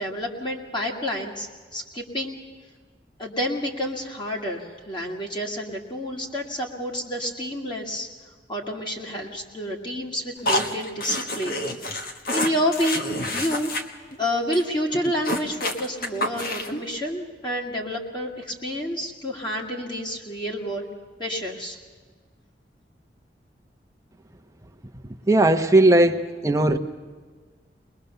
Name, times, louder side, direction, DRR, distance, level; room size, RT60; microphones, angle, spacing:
voice 1, 0.0-2.4 3.2-8.1 8.5-13.7 14.2-20.9 21.2-21.8, equal, 25° left, 0 dB, 2.1 m, -29 dB
sound 1, 10.4-13.8 14.1-14.2 14.5-14.6 14.9-16.8, left 1 dB, 55° left, 1.4 m, -28 dB
voice 2, 25.3-26.8, right 1 dB, 20° right, 6 dB, 1.0 m, -18 dB
22.0 x 21.0 x 6.9 m, 1.5 s
head